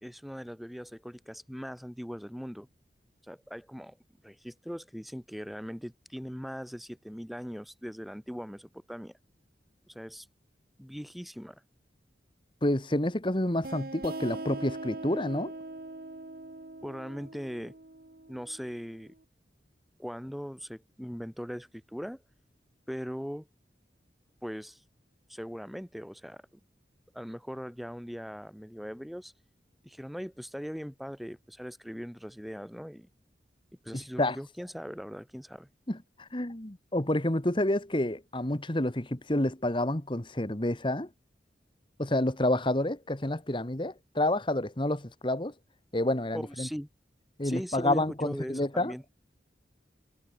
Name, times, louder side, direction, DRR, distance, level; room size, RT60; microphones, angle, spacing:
voice 1, 0.0-2.7 3.2-4.0 4.2-9.1 9.9-10.3 10.8-11.6 16.8-17.7 18.3-19.1 20.0-22.2 22.9-23.5 24.4-24.8 25.3-26.4 27.1-29.3 29.8-33.1 33.8-35.7 46.3-46.9 47.4-49.0, equal, ahead, 1.2 m, -40 dB
voice 2, 12.6-15.5 33.9-34.4 35.9-41.1 42.0-45.5 45.9-46.7 47.4-48.9, left 1 dB, 30° left, 1.7 m, -29 dB
sound 1, 13.6-19.0, right 2 dB, 55° right, 1.3 m, -41 dB
head